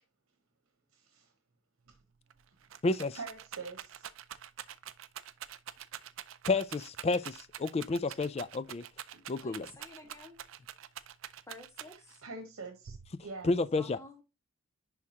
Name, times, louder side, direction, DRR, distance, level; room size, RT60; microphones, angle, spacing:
voice 1, 0.9-1.3 1.9-2.0 3.1-4.1 9.1-9.3 12.2-12.9 13.2-13.5, right 3 dB, 80° right, 1.1 m, -44 dB
Rattle, 1.9-2.0 2.3-12.2 12.9-13.5, right 10 dB, 65° right, 0.4 m, -46 dB
voice 2, 2.8-3.2 6.5-8.8 9.3-9.7 13.4-14.0, left 3 dB, 30° left, 0.3 m, -30 dB
voice 3, 9.4-10.4 11.5-12.2 13.8-14.2, left 2 dB, 15° left, 1.5 m, -51 dB
10.5 x 3.6 x 2.8 m
head